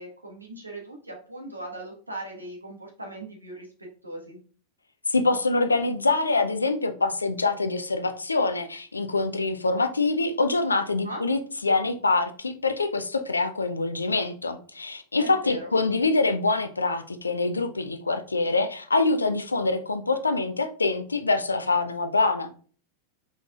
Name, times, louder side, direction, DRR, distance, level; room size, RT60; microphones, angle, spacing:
voice 1, 0.0-4.4 10.9-11.2 15.2-15.7, right 1 dB, 80° right, 0 dB, 1.4 m, -39 dB
voice 2, 5.1-22.5, left 3 dB, 80° left, 9 dB, 0.5 m, -25 dB
4.6 x 4.1 x 2.4 m, 0.41 s
figure-of-eight pair, 90°, 0 cm